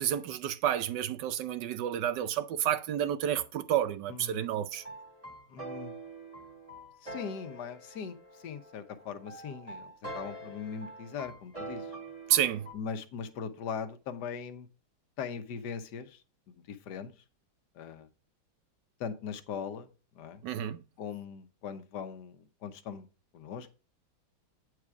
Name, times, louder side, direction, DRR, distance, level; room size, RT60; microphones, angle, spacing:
voice 1, 0.0-4.8 12.3-12.6 20.4-20.8, right 10 dB, 70° right, 1.1 m, -30 dB
voice 2, 4.1-4.5 5.5-5.9 7.0-12.0 12.7-14.7 15.2-16.2 16.5-17.1 17.7-18.1 19.0-19.9 20.2-20.4 21.0-23.1 23.3-23.7, left 6 dB, 60° left, 1.3 m, -40 dB
sound 1, 4.7-12.7, right 2 dB, 20° right, 1.6 m, -45 dB
8.8 x 4.8 x 4.8 m
omnidirectional pair, 2.2 m